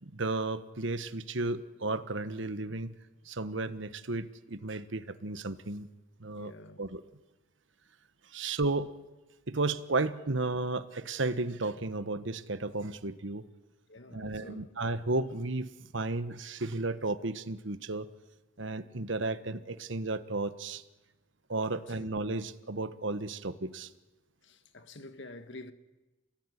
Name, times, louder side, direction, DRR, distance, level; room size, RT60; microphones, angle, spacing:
voice 1, 0.0-2.9 3.2-5.9 6.2-6.5 6.8-7.0 8.3-8.9 9.5-13.4 14.1-18.1 18.6-20.8 21.5-23.9, right 2 dB, 70° right, 1.3 m, -33 dB
voice 2, 6.4-6.8 13.9-14.7 21.7-22.1 24.4-25.7, left 2 dB, 60° left, 1.7 m, -48 dB
28.0 x 20.5 x 9.9 m
head